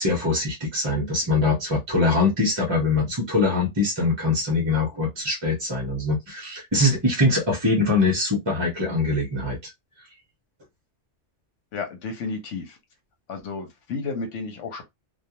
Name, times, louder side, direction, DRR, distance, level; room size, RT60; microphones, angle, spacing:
voice 1, 0.0-9.7, left 2 dB, 30° right, 0.5 m, -23 dB
voice 2, 11.7-12.8 13.3-14.8, left 4 dB, 85° left, 1.1 m, -32 dB
2.3 x 2.2 x 2.8 m
omnidirectional pair, 1.2 m